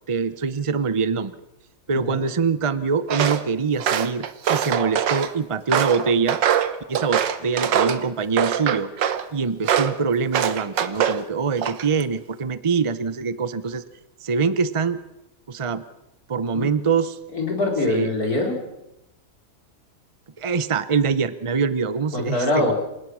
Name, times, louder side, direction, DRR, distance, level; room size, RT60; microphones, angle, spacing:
voice 1, 0.1-1.3 1.9-6.4 6.9-8.9 9.3-13.8 14.2-15.0 15.5-15.8 16.3-17.2 17.9-18.1 20.4-22.7, right 5 dB, 55° right, 14 dB, 0.3 m, -24 dB
voice 2, 1.9-2.2 16.5-16.7 17.3-18.6 22.1-22.7, left 2 dB, 55° left, 1 dB, 5.0 m, -23 dB
Walk footsteps, 3.1-3.4 3.8-5.3 5.7-8.0 8.4-9.2 9.7-10.0 10.3-11.2 11.6-12.0, right 9 dB, 90° right, 1.8 m, -23 dB
27.5 x 17.0 x 6.2 m, 0.89 s
omnidirectional pair, 1.9 m